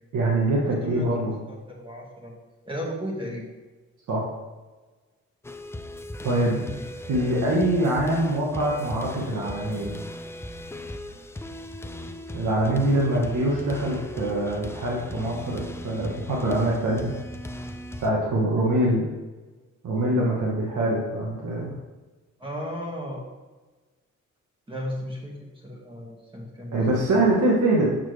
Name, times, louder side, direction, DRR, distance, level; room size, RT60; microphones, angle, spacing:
voice 1, 0.1-1.3 4.1-4.2 6.2-6.6 7.1-10.0 12.3-17.1 18.0-19.1 19.8-21.7 26.7-27.9, right 1 dB, 85° right, -4 dB, 1.3 m, -24 dB
voice 2, 0.6-1.1 1.5-2.4 2.6-3.5 6.2-6.9 13.0-13.2 22.4-23.2 24.7-27.0, equal, 15° right, -1 dB, 1.7 m, -35 dB
sound 1, 5.4-18.1, left 1 dB, 10° left, 0.4 m, -38 dB
6.6 x 6.2 x 3.3 m, 1.2 s
cardioid pair, 100°, 29 cm